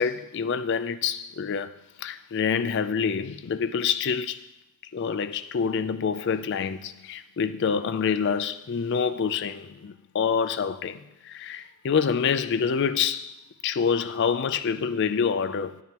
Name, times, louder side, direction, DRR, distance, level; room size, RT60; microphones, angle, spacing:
voice 1, 0.0-4.4 4.9-13.3 13.6-15.8, left 6 dB, 55° left, 0.4 m, -27 dB
9.2 x 9.0 x 3.0 m
head